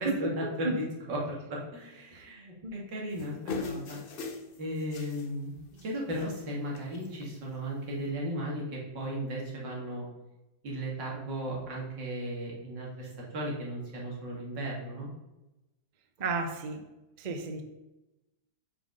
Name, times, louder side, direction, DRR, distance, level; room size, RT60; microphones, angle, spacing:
voice 1, 0.0-0.8 1.1-4.0 4.6-5.6 5.8-10.1 10.6-15.1, equal, 80° right, -3 dB, 2.6 m, -35 dB
sound 1, 3.2-5.3 5.6-5.8 6.1-6.5 6.7-7.3 8.0-8.1, left 4 dB, 65° left, 0.5 m, -39 dB
voice 2, 16.2-16.8 17.2-17.6, right 4 dB, 50° right, 5 dB, 0.5 m, -32 dB
5.8 x 5.4 x 5.2 m, 0.99 s
omnidirectional pair, 1.9 m